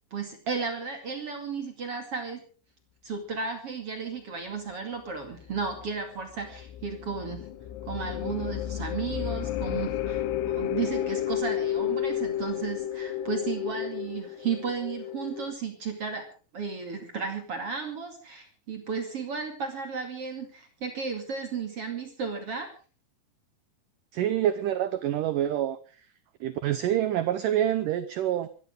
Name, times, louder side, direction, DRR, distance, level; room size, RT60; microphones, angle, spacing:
voice 1, 0.1-2.4 3.0-7.5 7.8-16.2 16.5-22.7, right 5 dB, 40° right, 5 dB, 2.6 m, -34 dB
sound 1, 5.2-15.5, left 11 dB, 75° left, 3.0 m, -32 dB
voice 2, 24.1-26.1 26.4-28.6, right 11 dB, 85° right, 13 dB, 1.9 m, -27 dB
24.5 x 14.0 x 3.7 m, 0.38 s
omnidirectional pair, 4.9 m